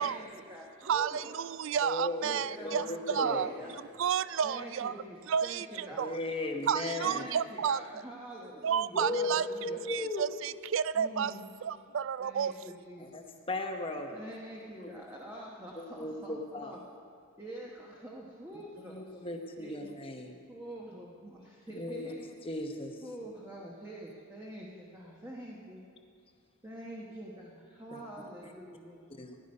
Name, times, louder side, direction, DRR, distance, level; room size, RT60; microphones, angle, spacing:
voice 1, 0.0-1.3 2.2-3.7 4.4-6.0 7.0-9.8 10.9-11.4 12.2-13.2 14.1-16.8 17.4-19.3 19.6-19.7 20.5-22.2 23.0-25.8 26.6-29.1, right 1 dB, 10° right, 1.0 m, -46 dB
voice 2, 0.9-3.5 4.0-4.9 5.3-6.2 6.7-8.0 8.6-9.4 9.9-11.3 11.6-12.5, right 8 dB, 60° right, 0.3 m, -31 dB
voice 3, 1.8-3.5 5.9-7.3 8.9-10.3 13.0-14.1 14.8-14.9 15.8-16.7 18.5-20.4 21.7-22.1 22.4-23.0 27.9-28.0 28.4-28.5 29.2-29.4, left 2 dB, 25° left, 0.9 m, -36 dB
16.5 x 10.5 x 5.3 m
head